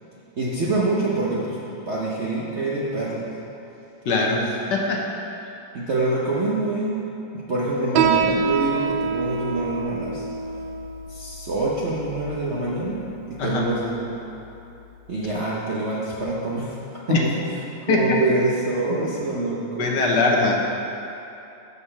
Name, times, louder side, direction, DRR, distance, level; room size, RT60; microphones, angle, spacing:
voice 1, 0.4-1.6 1.9-3.3 4.0-4.4 5.7-7.1 7.3-10.3 11.1-14.2 15.1-16.8 17.1-17.3 17.8-20.2, right 2 dB, 55° right, -6 dB, 0.8 m, -26 dB
voice 2, 4.0-4.4 4.7-5.0 5.4-5.5 13.4-13.6 17.1-17.2 17.9-18.2 19.8-20.5, left 3 dB, 65° left, -1 dB, 1.3 m, -21 dB
Piano, 8.0-15.0, right 6 dB, 80° right, 1.3 m, -27 dB
6.4 x 5.5 x 7.1 m, 2.9 s
omnidirectional pair, 2.2 m